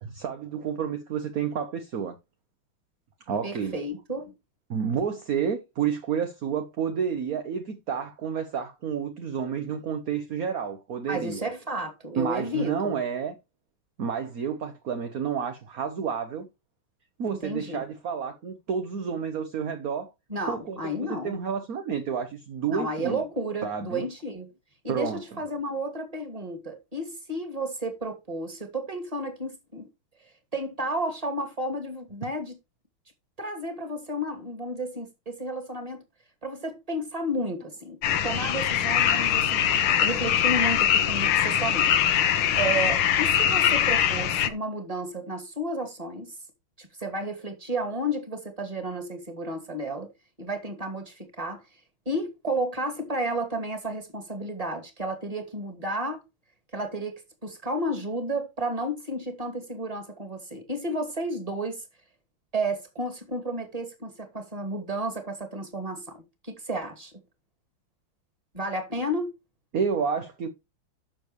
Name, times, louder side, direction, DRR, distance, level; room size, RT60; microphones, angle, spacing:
voice 1, 0.0-2.2 3.3-3.7 4.7-11.5 12.2-13.3 14.0-16.5 17.2-20.1 20.5-23.2 23.6-24.0 24.9-25.4 69.7-70.5, right 7 dB, 50° right, 1.3 m, -30 dB
voice 2, 3.4-4.3 11.1-13.0 17.2-17.8 20.3-21.4 22.7-24.5 24.8-29.9 30.5-32.6 33.4-36.0 36.4-42.0 42.5-46.3 46.8-50.1 50.4-51.6 52.1-56.2 56.7-61.8 62.5-67.1 68.5-69.3, right 1 dB, 15° right, 2.4 m, -32 dB
sound 1, 38.0-44.5, left 9 dB, 75° left, 1.8 m, -22 dB
12.0 x 6.9 x 3.1 m
omnidirectional pair, 2.3 m